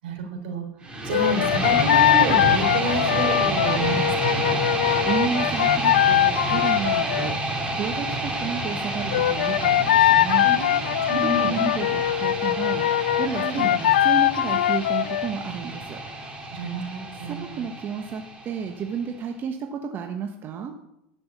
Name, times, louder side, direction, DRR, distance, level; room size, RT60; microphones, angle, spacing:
voice 1, 0.0-0.7 1.0-4.6 10.4-10.7 11.1-11.7 13.3-13.7 16.5-17.6, right 2 dB, 70° right, 4 dB, 3.8 m, -29 dB
sound 1, 0.8-18.8, right 1 dB, 15° right, 3.7 m, -29 dB
sound 2, 1.1-7.3 9.1-15.3, left 12 dB, 80° left, 0.5 m, -21 dB
voice 2, 5.0-7.4 7.7-10.4 11.2-12.8 13.2-16.0 17.2-20.7, right 6 dB, 35° right, 4 dB, 1.3 m, -31 dB
13.5 x 6.1 x 8.4 m, 0.86 s
hypercardioid pair, 100°, 6 cm